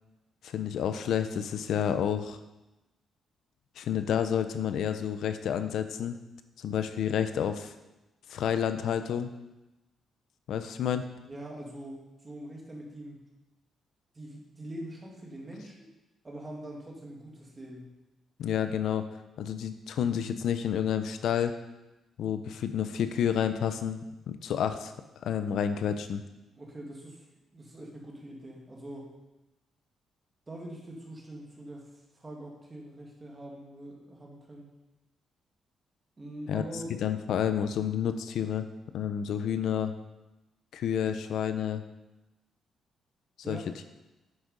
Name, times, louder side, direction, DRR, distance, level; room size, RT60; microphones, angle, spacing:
voice 1, 0.4-2.4 3.8-6.2 6.6-7.7 8.3-9.3 10.5-11.1 18.4-19.0 19.4-21.6 22.2-24.9 25.2-26.2 36.5-36.6 37.0-38.7 38.9-39.9 40.7-41.8 43.5-43.6, left 8 dB, 70° left, 9 dB, 0.6 m, -29 dB
voice 2, 11.2-13.2 14.1-15.8 16.2-17.9 26.5-27.2 27.5-29.1 30.5-34.7 36.2-36.9 43.4-43.7, right 1 dB, 20° right, -1 dB, 2.0 m, -43 dB
9.7 x 6.4 x 5.3 m, 1.0 s
cardioid pair, 170°, 0 cm